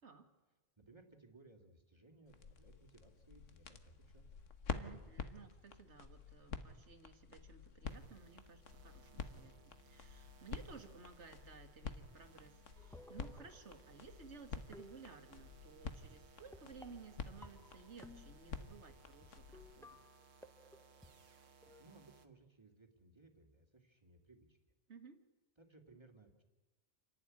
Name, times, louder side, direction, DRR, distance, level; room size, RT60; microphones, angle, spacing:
voice 1, 0.8-4.2 21.8-24.7 25.6-26.4, right 3 dB, 20° right, 4 dB, 2.2 m, -63 dB
sound 1, 2.3-19.8, left 5 dB, 80° left, 1.5 m, -49 dB
voice 2, 4.7-20.0 24.9-25.2, right 5 dB, 65° right, 7 dB, 1.9 m, -57 dB
sound 2, 7.8-22.3, right 5 dB, 85° right, 1.6 m, -65 dB
sound 3, 12.8-14.2 14.7-15.6 16.5-18.7 19.2-19.3 19.5-21.8, left 1 dB, 5° left, 0.8 m, -59 dB
28.5 x 11.5 x 9.7 m, 1.2 s
omnidirectional pair, 1.3 m